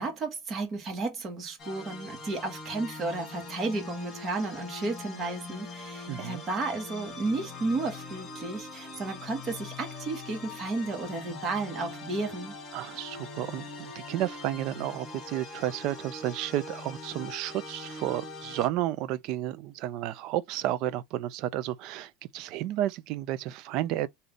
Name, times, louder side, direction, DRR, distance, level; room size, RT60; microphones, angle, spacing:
voice 1, 0.0-12.5, right 3 dB, 25° right, 1.6 m, -33 dB
sound 1, 1.6-18.7, left 3 dB, 25° left, 2.2 m, -42 dB
voice 2, 6.1-6.4 12.7-24.1, right 13 dB, 50° right, 0.5 m, -32 dB
3.8 x 2.7 x 3.4 m
supercardioid pair, 145°, 0 cm